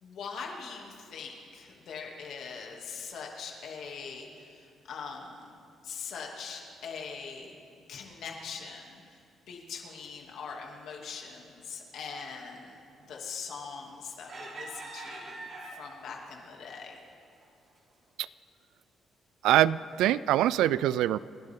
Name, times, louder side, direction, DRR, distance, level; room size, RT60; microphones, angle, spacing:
voice 1, 0.0-5.5 5.8-7.5 7.9-9.0 9.5-12.8 13.1-17.0, left 5 dB, 70° left, 0 dB, 2.7 m, -42 dB
sound 1, 13.5-13.8 14.3-16.1 16.7-16.8 17.2-17.4, right 2 dB, 55° right, 3.4 m, -43 dB
voice 2, 19.4-21.2, right 13 dB, 90° right, 18 dB, 0.3 m, -24 dB
29.5 x 11.5 x 3.8 m, 2.4 s
cardioid pair, 90°, 0 cm